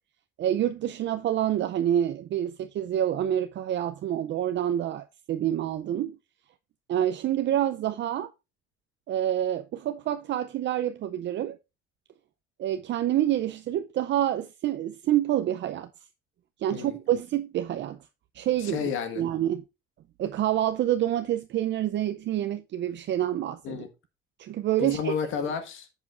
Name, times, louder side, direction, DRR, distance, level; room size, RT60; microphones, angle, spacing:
voice 1, 0.4-6.2 6.9-8.3 9.1-11.6 12.6-15.9 16.6-18.0 18.3-18.8 19.2-19.6 20.2-23.8 24.4-25.1, right 11 dB, 65° right, 0.5 m, -27 dB
voice 2, 18.6-19.2 23.6-23.9 24.8-25.9, left 7 dB, 85° left, 1.6 m, -31 dB
10.5 x 7.4 x 2.5 m
cardioid pair, 90°, 20 cm